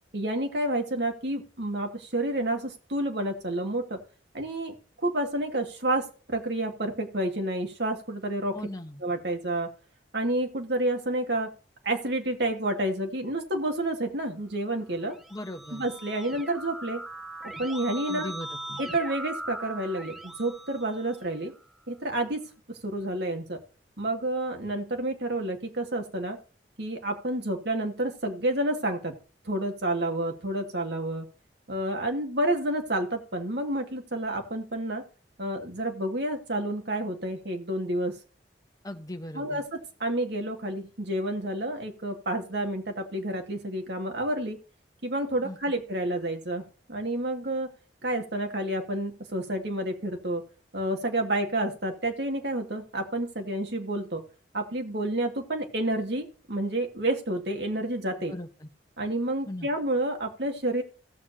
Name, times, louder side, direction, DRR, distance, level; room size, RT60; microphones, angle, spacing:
voice 1, 0.1-4.0 4.3-4.7 5.0-8.6 9.0-9.7 10.1-11.5 11.8-15.2 15.7-17.0 17.6-18.3 18.8-21.5 21.9-22.4 22.7-23.6 24.0-26.4 26.8-29.2 29.5-31.3 31.7-35.0 35.4-38.2 39.3-44.6 45.0-47.7 48.0-50.4 50.7-54.2 54.5-58.3 59.0-60.8, right 1 dB, 65° right, 3 dB, 2.1 m, -29 dB
voice 2, 8.5-9.0 15.3-15.9 18.1-18.8 38.8-39.6 45.4-45.6 58.3-58.7 59.5-59.7, left 1 dB, 20° left, 5 dB, 1.1 m, -38 dB
Keyboard (musical), 14.9-21.6, right 2 dB, ahead, 0.9 m, -40 dB
17.0 x 7.1 x 2.8 m, 0.37 s
head